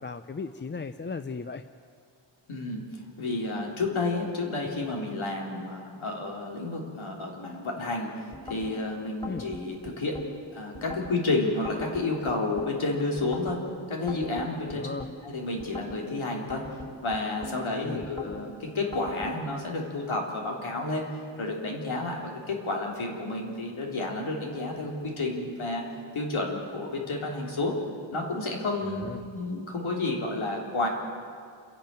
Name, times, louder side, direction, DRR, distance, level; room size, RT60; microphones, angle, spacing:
voice 1, 0.0-1.6 9.3-9.4 14.7-15.1 17.8-18.1 28.8-29.2, left 4 dB, 25° left, 10 dB, 0.5 m, -36 dB
voice 2, 2.5-10.2 10.5-14.9 15.2-16.6 17.0-21.1 21.4-25.8 26.1-27.7 28.1-29.1 29.3-30.9, left 2 dB, 80° left, -1 dB, 3.7 m, -31 dB
sound 1, 8.3-8.7 9.2-10.3 10.7-11.2 11.6-12.7 13.2-13.6 14.1-15.1 15.6-16.0 16.5-17.6 18.0-18.4 18.9-19.4, left 2 dB, 10° left, 3.0 m, -41 dB
29.0 x 11.0 x 9.0 m, 2.3 s
wide cardioid pair, 140°, 47 cm